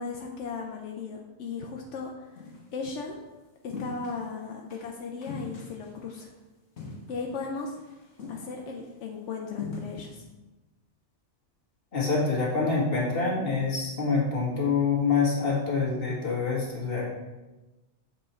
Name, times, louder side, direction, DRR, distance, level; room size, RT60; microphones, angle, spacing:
voice 1, 0.0-2.4 2.7-3.2 3.6-6.3 7.1-7.7 8.3-10.2, left 4 dB, 90° left, 1 dB, 1.0 m, -36 dB
sound 1, 2.4-2.7 3.7-4.3 4.7-4.9 5.2-6.2 6.8-7.4 7.7-7.9 8.2-8.9 9.6-10.1, left 3 dB, 70° left, 1.5 m, -40 dB
voice 2, 11.9-17.1, left 4 dB, 55° left, -5 dB, 2.0 m, -26 dB
7.5 x 4.4 x 4.3 m, 1.1 s
omnidirectional pair, 1.2 m